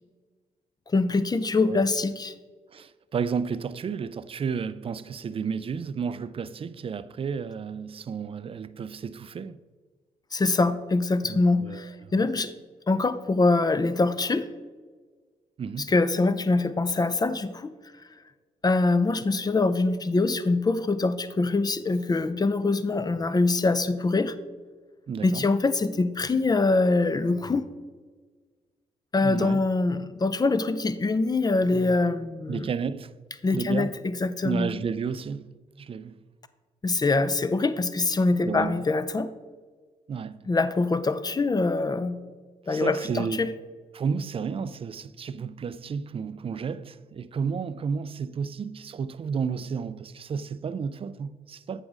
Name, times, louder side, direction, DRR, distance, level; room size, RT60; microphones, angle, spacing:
voice 1, 0.9-2.3 10.3-12.5 12.9-14.5 15.8-17.7 18.6-24.3 25.2-27.6 29.1-32.7 33.4-34.7 36.8-39.3 40.5-42.2 42.7-43.5, left 3 dB, 25° left, 0.5 m, -24 dB
voice 2, 2.7-9.6 11.2-12.3 15.6-15.9 25.1-25.5 29.2-29.6 32.5-33.2 33.5-33.9 34.4-35.5 35.8-36.2 38.4-38.8 40.1-40.5 42.7-43.5 43.9-51.8, right 6 dB, 35° right, 0.4 m, -32 dB
7.8 x 5.0 x 3.7 m
supercardioid pair, 50°, 16 cm